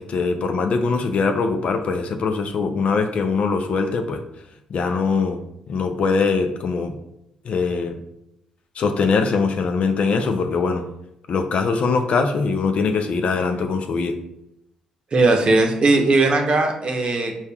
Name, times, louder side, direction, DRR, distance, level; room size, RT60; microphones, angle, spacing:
voice 1, 0.0-4.2 4.7-5.4 5.7-6.9 7.4-8.0 8.8-10.9 11.3-14.2, left 4 dB, 60° left, 6 dB, 0.4 m, -22 dB
voice 2, 15.1-17.3, right 2 dB, 45° right, 2 dB, 0.7 m, -18 dB
5.2 x 2.3 x 2.3 m, 0.82 s
supercardioid pair, 55°, 2 cm